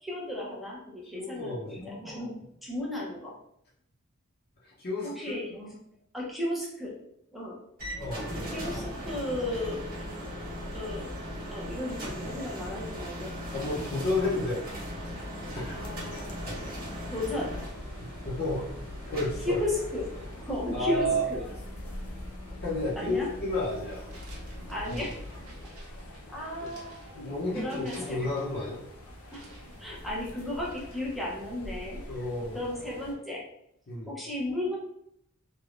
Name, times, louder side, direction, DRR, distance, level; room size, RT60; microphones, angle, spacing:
voice 1, 0.0-3.3 5.0-5.7 6.1-7.0 7.3-7.6 8.5-9.8 10.7-11.1 11.5-13.3 15.7-16.3 17.1-17.5 19.4-20.1 20.4-21.5 23.0-23.3 24.7-25.1 26.3-26.9 27.5-28.3 29.3-29.5 29.8-32.0 32.5-33.4 34.1-34.8, left 1 dB, ahead, -4 dB, 0.6 m, -34 dB
voice 2, 1.0-1.8 4.6-5.4 8.0-8.3 13.5-14.6 15.0-15.1 15.5-15.8 18.0-18.6 19.1-19.6 20.7-21.2 22.6-24.0 24.9-25.1 26.6-26.7 27.2-28.8 32.1-32.6 33.9-34.1, left 1 dB, 45° left, -7 dB, 0.6 m, -31 dB
sound 1, 7.8-25.7, equal, 45° right, 1.1 m, -39 dB
sound 2, 15.7-33.1, equal, 85° left, 0.6 m, -46 dB
sound 3, 23.5-28.5 29.3-31.3, right 2 dB, 70° right, 0.8 m, -54 dB
3.2 x 2.2 x 2.4 m, 0.75 s
head